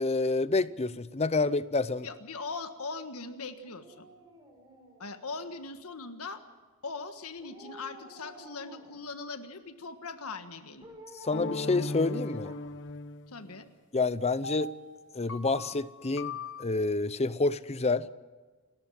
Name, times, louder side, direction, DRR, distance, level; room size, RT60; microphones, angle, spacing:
voice 1, 0.0-2.1 11.2-12.5 13.9-14.7 15.1-18.1, left 3 dB, 30° left, 15 dB, 0.7 m, -28 dB
voice 2, 2.0-4.1 5.0-6.4 6.8-10.9 13.3-13.7, left 4 dB, 75° left, 8 dB, 1.6 m, -40 dB
Dog, 3.6-5.7 7.4-9.1 10.8-12.9 13.3-13.4, right 1 dB, 20° right, 5.5 m, -51 dB
sound 1, 11.3-13.6 14.4-16.6, left 3 dB, 55° left, 1.0 m, -38 dB
29.0 x 13.5 x 7.6 m, 1.4 s
head